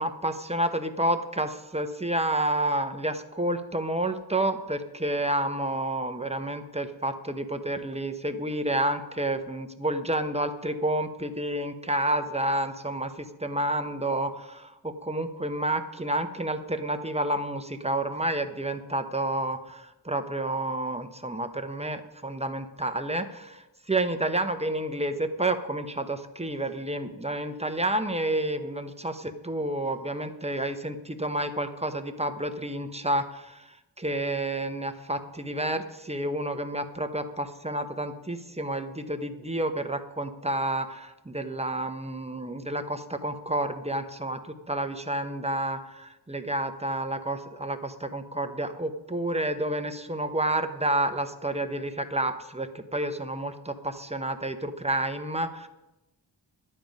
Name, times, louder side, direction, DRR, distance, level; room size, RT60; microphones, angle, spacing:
voice 1, 0.0-55.7, right 1 dB, 15° right, 8 dB, 0.8 m, -30 dB
12.0 x 9.3 x 5.2 m, 0.98 s
wide cardioid pair, 90°, 46 cm